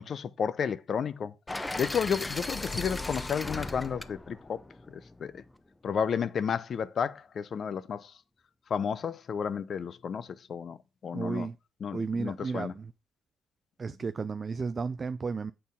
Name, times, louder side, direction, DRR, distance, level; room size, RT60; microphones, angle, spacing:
voice 1, 0.0-1.3 1.7-4.6 5.2-5.4 5.8-8.1 8.7-10.8 11.0-11.5 11.8-12.7, left 7 dB, 55° left, 0.6 m, -32 dB
sound 1, 1.5-5.5, left 2 dB, 15° left, 0.6 m, -37 dB
voice 2, 11.1-11.6 11.9-12.9 13.8-15.5, right 4 dB, 35° right, 0.4 m, -33 dB
7.5 x 4.4 x 5.2 m
cardioid pair, 90°, 0 cm